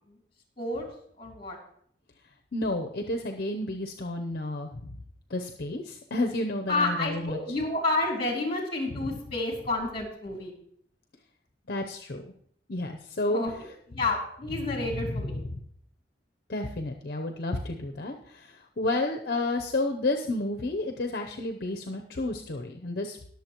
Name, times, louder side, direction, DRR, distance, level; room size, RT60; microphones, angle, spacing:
voice 1, 1.2-1.6 6.7-10.5 13.3-15.4, left 2 dB, 30° left, 1 dB, 2.8 m, -30 dB
voice 2, 2.5-4.9 5.3-7.4 11.7-12.2 12.7-13.4 15.1-15.4 16.5-23.2, left 2 dB, 55° left, 4 dB, 0.8 m, -31 dB
20.0 x 7.1 x 3.0 m, 0.66 s
head